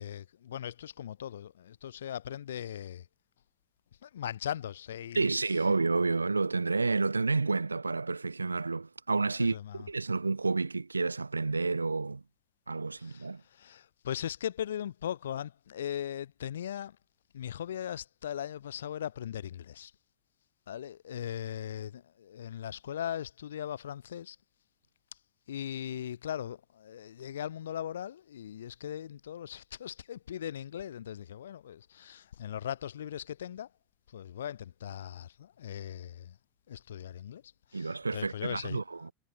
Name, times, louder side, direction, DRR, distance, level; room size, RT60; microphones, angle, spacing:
voice 1, 0.0-3.1 4.0-5.4 9.4-9.9 13.0-17.0 17.3-19.9 20.7-24.4 25.5-33.7 34.1-36.4 36.7-37.4 37.7-38.8, left 10 dB, 70° left, 2.3 m, -39 dB
voice 2, 5.1-12.2 12.7-13.4 37.7-39.1, right 3 dB, 85° right, 2.8 m, -30 dB
figure-of-eight pair, 80°, 0 cm